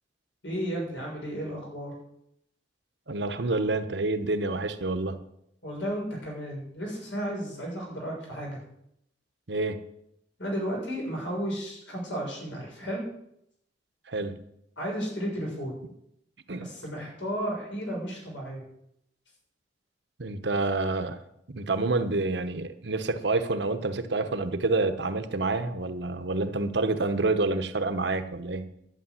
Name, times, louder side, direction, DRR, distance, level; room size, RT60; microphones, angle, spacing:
voice 1, 0.4-1.9 5.6-8.6 10.4-13.0 14.8-15.8 16.6-18.6, equal, 75° left, -2 dB, 6.8 m, -33 dB
voice 2, 3.1-5.2 9.5-9.8 14.1-14.4 16.5-16.7 20.2-21.2 21.5-28.7, right 3 dB, 65° right, 9 dB, 1.0 m, -28 dB
11.5 x 6.7 x 9.6 m, 0.76 s
head